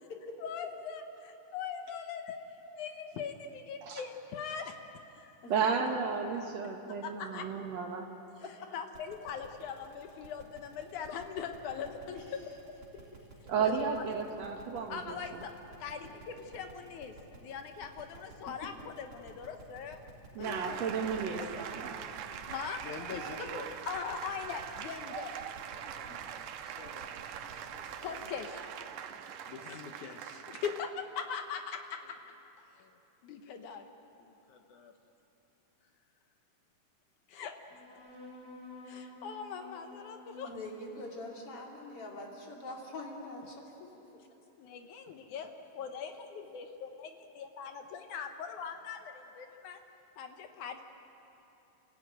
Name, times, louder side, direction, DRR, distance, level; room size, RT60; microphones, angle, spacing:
voice 1, 0.4-2.4 2.7-4.8 5.1-5.4 7.0-7.6 8.4-12.2 13.6-14.0 14.9-15.5 15.8-20.0 20.3-20.9 21.4-22.0 22.4-25.4 25.7-26.4 26.6-27.1 27.4-28.7 29.5-32.2 32.6-33.9 34.5-34.9 37.3-37.6 38.9-40.6 44.6-49.8 50.2-50.8, left 6 dB, 75° left, 6 dB, 2.4 m, -42 dB
voice 2, 5.5-8.1 13.5-15.2 20.4-22.0 29.1-29.2, right 6 dB, 60° right, 3 dB, 2.2 m, -33 dB
voice 3, 8.4-8.7 12.1-12.2 20.4-21.1 23.4-23.5 27.0-27.1 40.5-43.6, left 2 dB, 45° left, -1 dB, 3.6 m, -44 dB
sound 1, 8.9-28.4, right 4 dB, 45° right, 4.4 m, -53 dB
sound 2, 20.4-30.8, right 9 dB, 90° right, 2.5 m, -43 dB
sound 3, 37.7-44.6, left 2 dB, 10° left, 3.6 m, -53 dB
29.0 x 15.0 x 9.2 m, 3.0 s
omnidirectional pair, 3.7 m